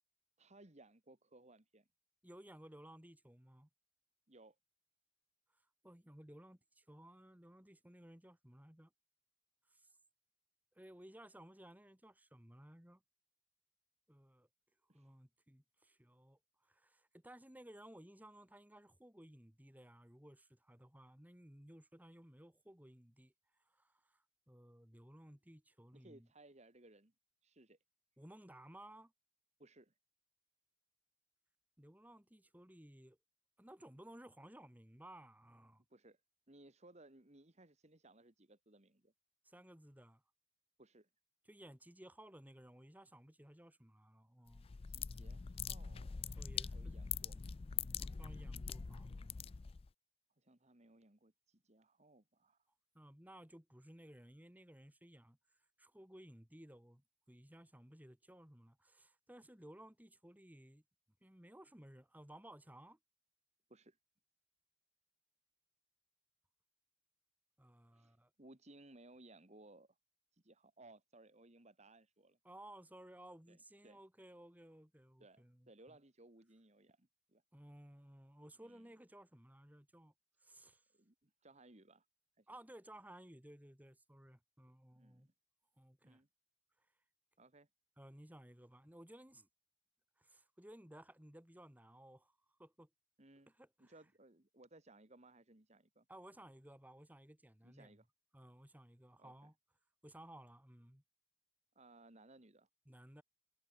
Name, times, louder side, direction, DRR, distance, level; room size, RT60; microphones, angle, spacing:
voice 1, 0.4-1.9 4.3-4.6 14.9-15.1 25.9-27.1 27.4-27.8 29.6-29.9 35.9-36.2 36.5-39.1 40.8-41.1 44.9-47.6 48.0-48.2 50.4-52.6 63.7-64.0 67.9-70.0 70.3-72.4 73.5-73.6 73.8-74.0 75.2-77.4 78.6-78.9 80.9-82.1 82.4-82.5 84.9-85.3 86.0-86.3 87.4-87.7 93.2-93.5 93.8-96.1 97.6-98.1 99.2-99.5 101.8-102.7, right 2 dB, 35° right, 1.9 m, -62 dB
voice 2, 2.2-3.7 5.5-8.9 9.7-10.0 10.7-13.0 14.1-14.5 14.9-26.3 28.2-29.1 31.8-33.2 33.6-35.8 39.4-40.2 41.4-44.7 46.4-47.0 48.0-49.1 52.9-60.8 61.2-63.0 67.6-68.3 72.4-76.0 77.5-80.1 80.4-80.8 82.5-85.3 85.8-86.2 86.8-86.9 88.0-89.5 90.2-92.9 93.5-93.9 96.1-98.0 98.3-99.5 100.0-101.0 102.9-103.2, right 1 dB, 10° right, 1.7 m, -58 dB
sound 1, 44.5-49.9, left 7 dB, 30° left, 0.3 m, -43 dB
head